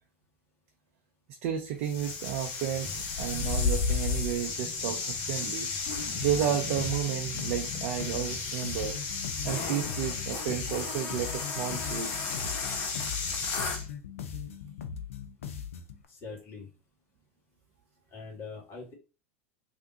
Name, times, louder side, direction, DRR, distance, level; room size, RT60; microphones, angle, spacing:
voice 1, 1.4-2.9 3.2-5.7 6.2-9.0 9.4-12.1, right 11 dB, 60° right, 4 dB, 0.5 m, -32 dB
sound 1, 1.8-13.9, left 4 dB, 55° left, 0.8 m, -33 dB
sound 2, 6.2-16.0, left 7 dB, 80° left, 0.4 m, -40 dB
voice 2, 16.1-16.7 18.1-18.9, left 4 dB, 35° left, -1 dB, 1.3 m, -43 dB
3.3 x 2.6 x 2.6 m, 0.31 s
hypercardioid pair, 85°, 7 cm